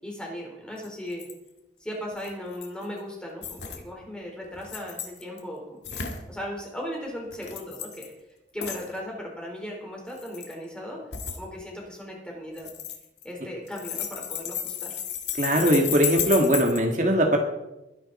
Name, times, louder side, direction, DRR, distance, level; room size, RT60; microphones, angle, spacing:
voice 1, 0.0-1.3 1.8-8.1 8.5-11.0 11.4-12.7 13.2-15.0, equal, 5° left, -2 dB, 4.3 m, -37 dB
sound 1, 0.8-1.3 2.2-2.8 3.4-3.8 4.5-5.4 5.8-6.2 7.3-8.1 8.6-8.9 10.1-10.5 11.1-11.4 12.6-13.4 13.7-16.8, left 9 dB, 80° left, 2.1 m, -33 dB
voice 2, 15.4-17.4, right 1 dB, 45° right, 1 dB, 1.8 m, -21 dB
21.5 x 10.5 x 4.3 m, 0.96 s
head